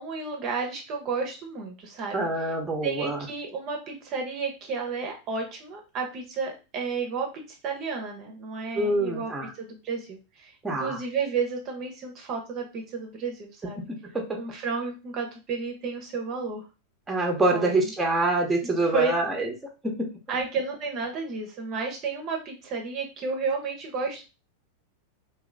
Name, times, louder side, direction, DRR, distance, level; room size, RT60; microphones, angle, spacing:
voice 1, 0.0-2.2 2.4-2.5 2.8-7.3 7.6-10.5 10.8-13.8 14.4-16.7 17.5-17.9 18.6-19.1 20.3-24.2, right 4 dB, 35° right, 2 dB, 0.9 m, -32 dB
voice 2, 2.1-3.3 8.7-9.5 10.6-11.0 13.8-13.9 14.1-14.4 17.1-19.5 19.8-20.1, right 2 dB, 10° right, 2 dB, 0.9 m, -25 dB
3.0 x 2.8 x 3.8 m, 0.31 s
figure-of-eight pair, 90°, 0 cm